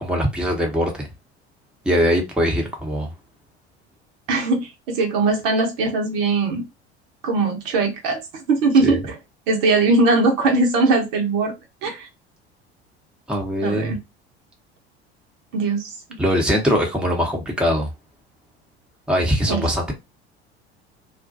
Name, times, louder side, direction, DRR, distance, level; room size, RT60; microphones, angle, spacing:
voice 1, 0.0-1.1 1.8-3.1 8.8-9.0 13.3-13.9 16.2-17.9 19.1-19.9, equal, 5° right, 0.9 m, -21 dB
voice 2, 4.3-6.6 7.2-8.2 8.5-9.2 9.5-11.5 11.8-12.1 13.6-14.0 15.5-16.2 19.5-19.7, right 3 dB, 60° right, 0.9 m, -20 dB
2.4 x 2.2 x 2.6 m
figure-of-eight pair, 70°, 33 cm